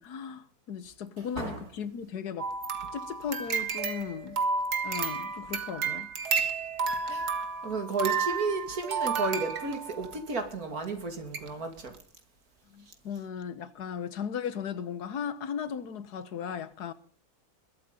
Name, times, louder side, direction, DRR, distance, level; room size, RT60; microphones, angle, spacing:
voice 1, 0.0-2.5 2.9-4.4 4.8-6.4 12.7-16.9, left 7 dB, 90° left, 1.7 m, -37 dB
sound 1, 2.4-10.2 10.8-10.9 11.3-11.5 11.9-12.0, right 5 dB, 90° right, 2.1 m, -31 dB
voice 2, 7.1-11.9, right 3 dB, 70° right, 3.0 m, -33 dB
21.5 x 8.6 x 5.3 m
omnidirectional pair, 1.6 m